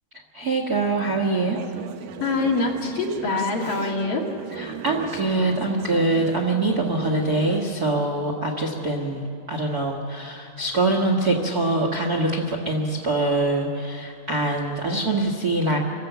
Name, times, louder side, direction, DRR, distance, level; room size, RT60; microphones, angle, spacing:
voice 1, 0.3-1.6 4.6-15.8, right 2 dB, 50° right, 0 dB, 1.1 m, -24 dB
Conversation / Chatter, 1.0-7.7, right 8 dB, 80° right, 2.6 m, -38 dB
voice 2, 2.2-4.3, left 3 dB, 75° left, 0 dB, 3.8 m, -24 dB
26.5 x 14.0 x 8.1 m, 2.6 s
omnidirectional pair, 3.9 m